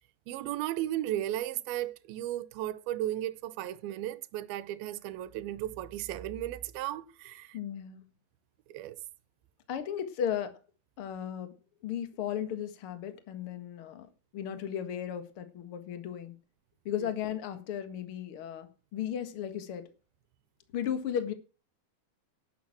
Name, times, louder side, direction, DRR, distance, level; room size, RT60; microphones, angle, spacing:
voice 1, 0.3-7.6 8.7-9.0 17.0-17.1, right 13 dB, 80° right, 2.6 m, -35 dB
voice 2, 7.5-8.0 9.7-10.6 11.0-11.5 11.8-14.1 14.3-16.3 16.9-19.8 20.7-21.3, left 9 dB, 50° left, 1.8 m, -35 dB
11.5 x 9.4 x 5.9 m
omnidirectional pair, 4.5 m